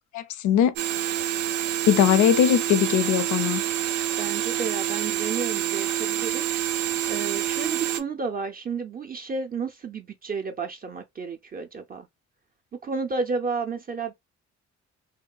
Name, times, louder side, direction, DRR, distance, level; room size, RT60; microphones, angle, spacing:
voice 1, 0.1-0.7 1.9-3.6, left 9 dB, 75° left, 0.5 m, -20 dB
sound 1, 0.8-8.0, right 12 dB, 90° right, 0.5 m, -27 dB
voice 2, 4.2-12.1 12.8-14.1, right 4 dB, 30° right, 0.4 m, -32 dB
2.8 x 2.2 x 2.2 m
cardioid pair, 90°, 30 cm